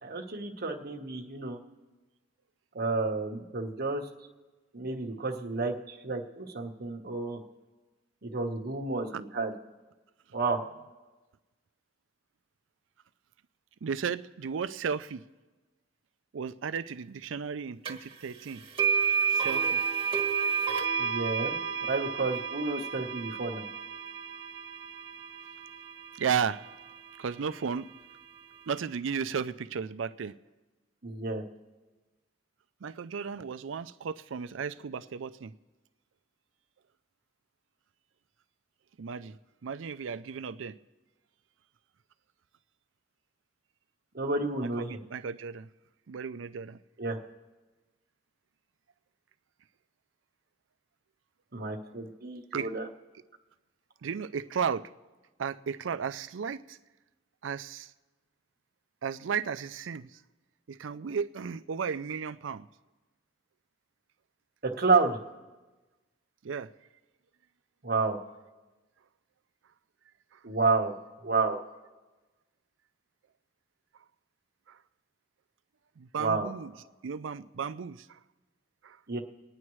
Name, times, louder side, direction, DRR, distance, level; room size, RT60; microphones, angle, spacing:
voice 1, 0.0-1.6 2.7-4.1 4.7-7.4 8.2-9.5 10.3-10.6 21.0-21.5 21.8-23.7 31.0-31.4 44.1-45.0 47.0-47.2 51.5-52.9 64.6-65.2 67.8-68.2 70.4-70.9 71.2-71.6 76.2-76.5 79.1-79.2, right 3 dB, 55° right, 1.2 m, -30 dB
voice 2, 13.8-15.2 16.3-18.6 19.3-19.8 26.2-26.6 27.2-27.9 28.7-30.3 32.8-35.5 39.0-39.4 39.6-40.8 44.9-45.7 46.1-46.8 52.5-52.7 54.0-54.9 55.4-56.8 57.4-57.9 59.0-60.1 60.7-62.7 66.4-66.7 74.7-74.8 76.0-76.7 77.0-78.2 78.8-79.0, right 6 dB, 85° right, 0.5 m, -34 dB
sound 1, 17.9-18.0 18.8-26.8, right 6 dB, 30° right, 1.5 m, -31 dB
28.5 x 9.7 x 3.1 m
head